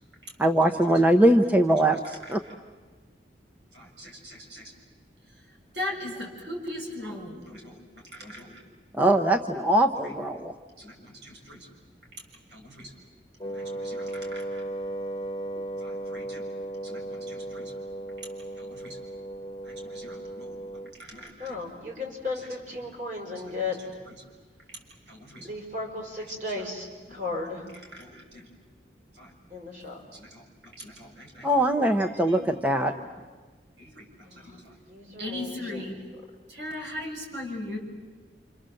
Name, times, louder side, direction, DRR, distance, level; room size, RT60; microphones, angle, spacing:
voice 1, 0.4-2.4 9.0-10.5 31.4-32.9, right 1 dB, 10° right, 5 dB, 0.8 m, -22 dB
voice 2, 1.9-2.5 3.7-4.7 5.2-8.6 10.0-10.1 10.8-11.7 12.1-12.2 12.5-12.9 13.5-14.6 15.8-16.5 16.8-17.7 18.2-18.3 18.6-19.0 19.6-20.6 20.9-21.6 22.3-22.5 23.3-24.2 24.7-24.8 25.1-25.5 26.2-26.7 27.1-27.3 27.7-28.5 29.1-29.3 30.1-31.6 32.0-32.9 33.8-34.8 35.2-36.0 36.5-37.8, left 1 dB, 75° right, -1 dB, 6.5 m, -41 dB
Wind instrument woodwind instrument, 13.4-21.0, right 1 dB, 25° left, 1.1 m, -36 dB
voice 3, 21.4-23.8 25.5-27.7 29.5-30.0 34.3-34.5 34.9-35.8, left 3 dB, 45° right, 1 dB, 5.8 m, -35 dB
28.5 x 27.0 x 7.7 m, 1.4 s
head